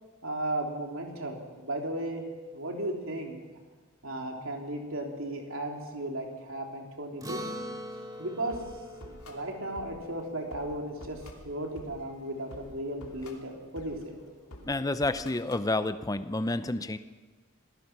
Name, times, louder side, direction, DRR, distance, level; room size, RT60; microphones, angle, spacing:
voice 1, 0.2-2.2 2.5-3.4 4.0-7.4 8.2-8.6 9.3-11.2 11.4-14.2, right 1 dB, 65° right, 2 dB, 3.4 m, -35 dB
Acoustic guitar, 7.2-11.9, equal, 15° right, 2.9 m, -43 dB
sound 1, 8.1-15.7, left 1 dB, 85° left, 2.9 m, -50 dB
voice 2, 14.6-17.0, left 2 dB, 15° left, 12 dB, 0.6 m, -29 dB
26.5 x 18.0 x 6.0 m, 1.4 s
head